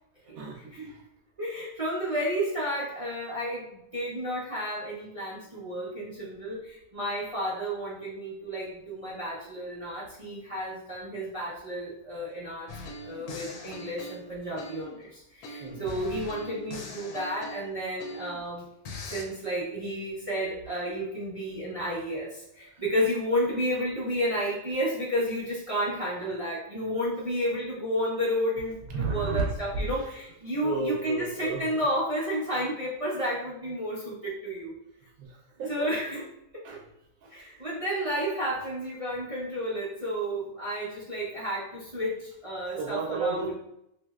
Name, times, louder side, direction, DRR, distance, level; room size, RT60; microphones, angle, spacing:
voice 1, 0.2-1.0 15.6-15.8 19.0-19.1 22.7-22.8 28.9-29.9 30.6-31.9 35.2-35.9 36.6-36.8 37.2-37.7 38.1-38.2 42.8-43.5, right 4 dB, 75° right, -1 dB, 1.0 m, -33 dB
voice 2, 1.4-12.8 13.0-18.7 19.1-34.7 35.7-36.2 36.5-36.8 37.3-43.5, equal, 40° right, -8 dB, 0.5 m, -31 dB
sound 1, 12.7-15.0 15.4-18.5 18.8-19.2, left 2 dB, 85° left, 1.1 m, -41 dB
3.1 x 2.7 x 2.3 m, 0.78 s
omnidirectional pair, 1.6 m